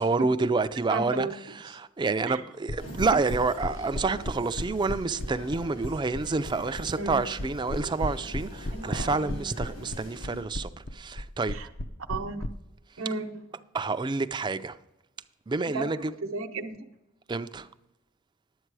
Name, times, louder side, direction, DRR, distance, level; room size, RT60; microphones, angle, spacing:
voice 1, 0.0-1.3 1.6-11.6 13.7-14.8 15.5-16.1 17.3-17.7, right 3 dB, 20° right, 0.4 m, -28 dB
voice 2, 0.9-1.3 2.3-2.4 7.0-7.3 8.7-9.4 11.5-11.7 12.1-12.5 13.0-13.5 15.7-16.0 16.3-16.8, right 3 dB, 90° right, 0.8 m, -34 dB
sound 1, 2.7-12.5, left 1 dB, 55° left, 0.6 m, -33 dB
sound 2, 2.8-10.4, equal, 90° left, 2.9 m, -44 dB
11.0 x 8.2 x 4.7 m
head